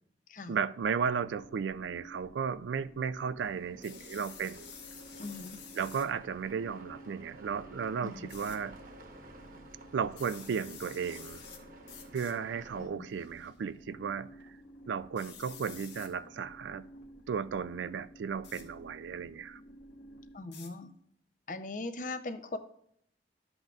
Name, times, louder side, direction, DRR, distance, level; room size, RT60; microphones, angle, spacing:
voice 1, 0.5-4.7 5.8-8.8 9.9-11.4 12.1-14.3 14.9-16.8 17.3-19.6, right 6 dB, 85° right, 0.3 m, -34 dB
sound 1, 0.8-20.4, right 1 dB, 90° left, 1.2 m, -53 dB
sound 2, 3.4-12.9, right 2 dB, 50° right, 1.1 m, -54 dB
sound 3, 3.8-6.1 8.3-8.6 10.1-11.6 11.9-12.3 13.1-13.5 15.2-16.1 18.4-18.7 20.5-20.7, left 8 dB, 70° left, 1.3 m, -49 dB
voice 2, 5.2-5.6 8.0-8.3 12.8-13.1 20.3-20.9 21.5-22.6, left 2 dB, 45° left, 0.6 m, -40 dB
12.0 x 7.9 x 2.4 m
head